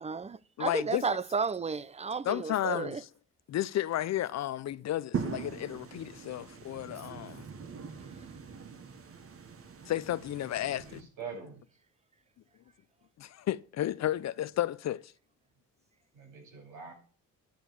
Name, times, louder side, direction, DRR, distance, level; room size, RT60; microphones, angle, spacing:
voice 1, 0.0-3.0, right 5 dB, 20° right, 0.6 m, -33 dB
voice 2, 0.6-1.0 2.2-3.1 3.5-7.5 9.9-11.1 13.2-15.1, left 12 dB, 60° left, 0.6 m, -33 dB
sound 1, 5.1-11.0, right 6 dB, 50° right, 1.5 m, -41 dB
voice 3, 10.6-11.6 16.1-16.9, right 5 dB, 85° right, 6.2 m, -44 dB
10.5 x 5.3 x 7.6 m
cardioid pair, 90°, 30 cm